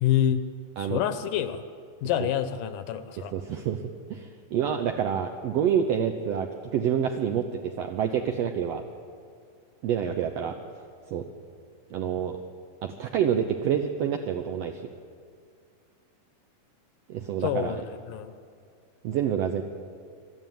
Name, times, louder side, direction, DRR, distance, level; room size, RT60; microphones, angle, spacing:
voice 1, 0.0-0.4 0.8-1.6 2.0-3.3 17.4-18.3, left 10 dB, 75° left, 11 dB, 2.3 m, -27 dB
voice 2, 3.3-3.8 4.1-8.8 9.8-10.6 11.1-11.2 11.9-12.4 12.8-14.8 17.1-17.8 19.0-19.6, right 8 dB, 80° right, 5 dB, 1.5 m, -27 dB
21.5 x 13.0 x 9.4 m, 2.3 s
omnidirectional pair, 4.0 m